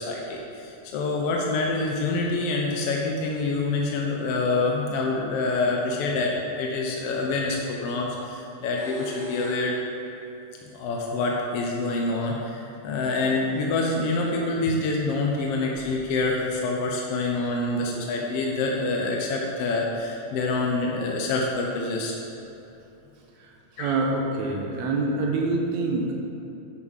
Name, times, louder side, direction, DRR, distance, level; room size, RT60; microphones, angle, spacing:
voice 1, 0.0-9.7 10.7-22.1 23.8-23.9, left 3 dB, 70° left, -1 dB, 1.4 m, -26 dB
sound 1, 7.5-7.7 8.5-9.8 12.5-12.6 13.3-13.4 13.8-13.9 14.3-14.4, equal, 50° left, 3.6 m, -41 dB
voice 2, 23.8-26.3, right 3 dB, 70° right, 0 dB, 2.1 m, -26 dB
8.5 x 7.0 x 5.6 m, 2.8 s
omnidirectional pair, 3.6 m